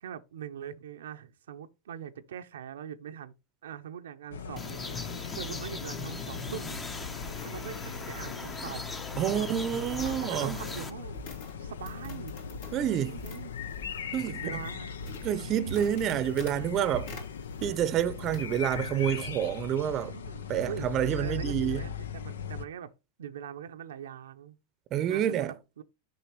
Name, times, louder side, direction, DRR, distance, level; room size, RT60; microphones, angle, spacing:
voice 1, 0.0-3.3 3.6-4.8 5.3-7.1 7.4-7.8 8.1-8.8 9.2-9.4 10.0-11.2 11.6-12.4 13.1-13.5 14.2-15.0 20.1-22.9 23.2-24.6 25.1-25.8, right 9 dB, 85° right, 0.6 m, -42 dB
sound 1, 4.3-22.6, left 6 dB, 90° left, 0.6 m, -39 dB
sound 2, 4.6-10.9, left 4 dB, 15° left, 0.8 m, -39 dB
sound 3, 5.6-18.0 18.2-18.9, left 1 dB, 65° left, 2.8 m, -47 dB
voice 2, 9.2-10.6 12.7-13.2 14.1-14.6 15.2-17.1 17.6-20.1 20.5-21.9 24.9-25.5, right 10 dB, 40° right, 0.6 m, -28 dB
6.7 x 5.6 x 3.0 m
hypercardioid pair, 115°, 0 cm